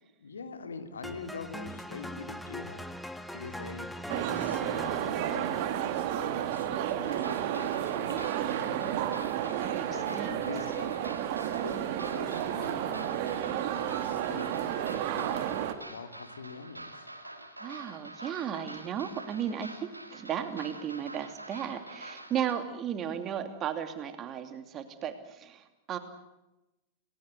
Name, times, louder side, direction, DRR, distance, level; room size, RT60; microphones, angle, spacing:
voice 1, 0.0-2.8 3.3-9.0 9.9-11.2 11.6-17.1, left 4 dB, 70° left, 7 dB, 2.5 m, -44 dB
sound 1, 1.0-7.1, left 1 dB, 5° left, 1.6 m, -42 dB
sound 2, 4.1-15.7, right 11 dB, 50° right, 2.2 m, -31 dB
sound 3, 7.0-22.5, right 1 dB, 85° right, 2.6 m, -46 dB
voice 2, 9.4-9.9 10.2-10.4 17.6-26.0, right 9 dB, 30° right, 8 dB, 2.8 m, -35 dB
29.0 x 19.0 x 8.1 m, 0.97 s
figure-of-eight pair, 90°, 0 cm